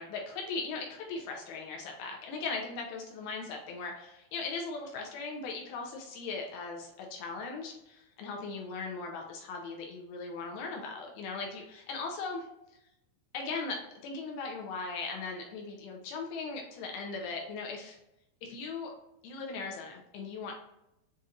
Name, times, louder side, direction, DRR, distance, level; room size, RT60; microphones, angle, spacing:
voice 1, 0.0-12.5 13.3-13.8 14.0-18.0 18.4-18.9 19.2-20.5, left 4 dB, 80° left, 0 dB, 2.3 m, -38 dB
7.5 x 2.8 x 2.4 m, 0.86 s
omnidirectional pair, 4.9 m